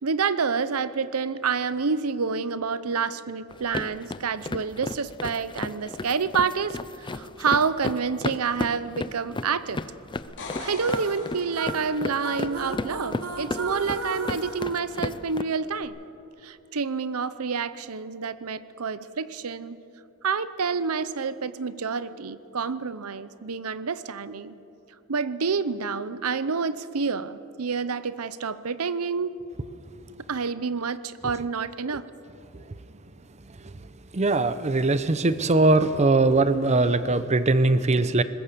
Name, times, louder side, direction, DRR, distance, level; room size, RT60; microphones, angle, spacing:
voice 1, 0.0-9.8 10.6-16.0 16.4-19.8 20.2-24.5 25.1-29.4 30.3-32.1, right 5 dB, 90° right, 15 dB, 0.8 m, -28 dB
sound 1, 3.5-15.4, left 2 dB, 20° left, 0.5 m, -34 dB
sound 2, 10.2-12.1 15.8-15.9, left 3 dB, 60° left, 3.6 m, -40 dB
sound 3, 10.8-15.6, right 3 dB, 70° right, 1.6 m, -36 dB
voice 2, 34.1-38.2, right 2 dB, 30° right, 13 dB, 0.7 m, -21 dB
23.0 x 20.5 x 6.8 m, 2.8 s
head